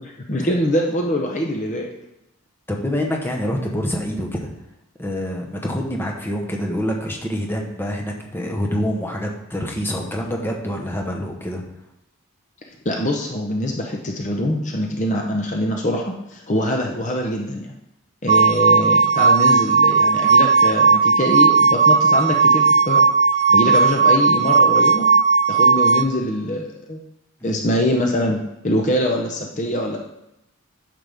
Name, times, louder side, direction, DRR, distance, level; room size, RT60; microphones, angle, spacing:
voice 1, 0.3-1.9 12.8-17.8 18.2-23.1 23.5-25.1 25.5-27.0 27.4-28.4 28.6-30.0, left 1 dB, 35° left, 1 dB, 0.8 m, -23 dB
voice 2, 2.7-4.5 5.0-11.6 27.4-27.6, equal, 10° left, 0 dB, 1.0 m, -26 dB
sound 1, 18.3-26.0, right 5 dB, 35° right, 0.3 m, -15 dB
9.5 x 6.7 x 3.5 m, 0.88 s
head